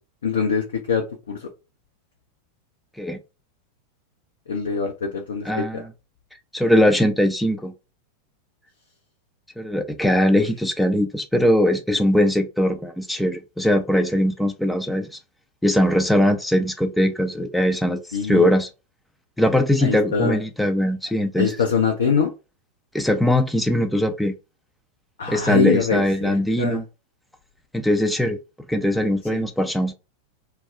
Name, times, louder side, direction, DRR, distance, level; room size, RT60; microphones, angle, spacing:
voice 1, 0.2-1.5 4.5-5.8 10.3-10.4 18.1-18.5 19.8-20.4 21.4-22.3 25.2-26.8 29.3-29.5, left 5 dB, 65° left, 0.5 m, -24 dB
voice 2, 5.5-5.8 6.5-7.7 9.6-15.2 15.6-18.7 19.4-21.5 22.9-24.3 25.3-26.8 27.7-28.4 28.7-29.9, equal, 5° left, 0.4 m, -20 dB
2.3 x 2.0 x 3.4 m
figure-of-eight pair, 90°, 0 cm